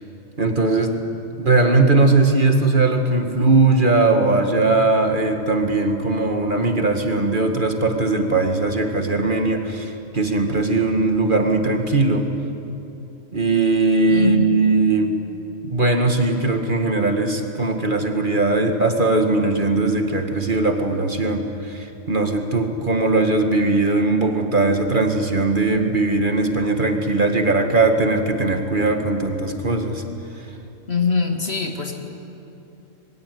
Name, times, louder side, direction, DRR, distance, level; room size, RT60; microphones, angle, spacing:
voice 1, 0.4-1.0 1.4-12.3 13.3-15.2 15.6-30.0, right 3 dB, 40° right, 5 dB, 2.1 m, -19 dB
voice 2, 14.1-14.6 30.9-31.9, left 5 dB, 55° left, 3 dB, 2.6 m, -23 dB
26.5 x 22.0 x 9.5 m, 2.9 s
omnidirectional pair, 1.3 m